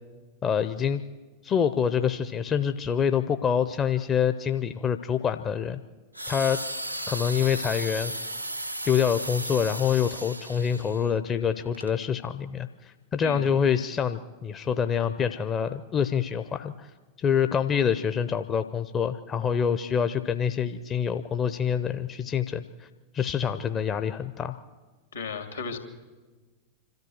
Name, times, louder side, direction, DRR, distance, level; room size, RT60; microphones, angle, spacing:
voice 1, 0.4-1.0 1.4-5.8 6.3-6.6 7.1-8.1 8.8-16.9 17.2-22.9 23.1-24.6, left 7 dB, 25° left, 10 dB, 0.7 m, -26 dB
sound 1, 6.1-11.1 11.7-11.9, right 1 dB, 90° right, 0.6 m, -35 dB
voice 2, 25.1-25.8, left 5 dB, 75° left, 7 dB, 2.6 m, -34 dB
25.5 x 13.5 x 7.9 m, 1.3 s
figure-of-eight pair, 90°, 0 cm